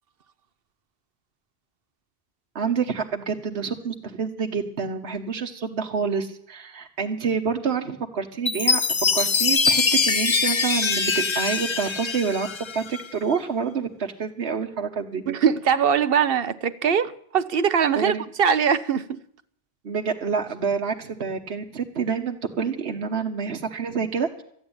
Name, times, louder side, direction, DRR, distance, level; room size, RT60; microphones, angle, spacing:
voice 1, 2.5-8.8 9.1-15.2 17.9-18.2 19.8-24.4, right 6 dB, 80° right, 1.3 m, -28 dB
Chime, 8.5-13.1, left 5 dB, 35° left, 0.5 m, -23 dB
voice 2, 15.3-18.1 18.4-19.2, right 7 dB, 65° right, 1.0 m, -21 dB
14.0 x 9.3 x 8.8 m
omnidirectional pair, 1.1 m